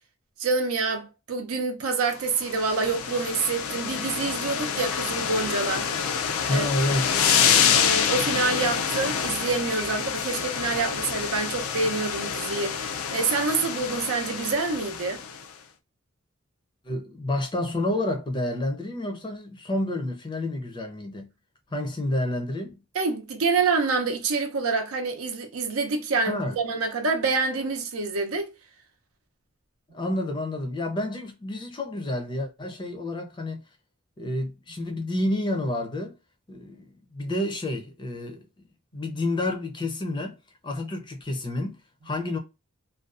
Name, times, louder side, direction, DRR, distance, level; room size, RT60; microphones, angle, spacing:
voice 1, 0.4-6.2 6.5-6.7 7.7-15.2 22.9-28.5, right 4 dB, 90° right, 0.6 m, -27 dB
sound 1, 2.2-15.4, left 7 dB, 85° left, 0.4 m, -27 dB
voice 2, 6.5-7.1 16.8-21.3 21.7-22.8 26.3-26.6 29.9-33.6 34.2-36.2 36.5-38.6 38.9-40.4 40.6-42.4, left 1 dB, 20° left, 0.4 m, -29 dB
2.5 x 2.2 x 2.3 m
head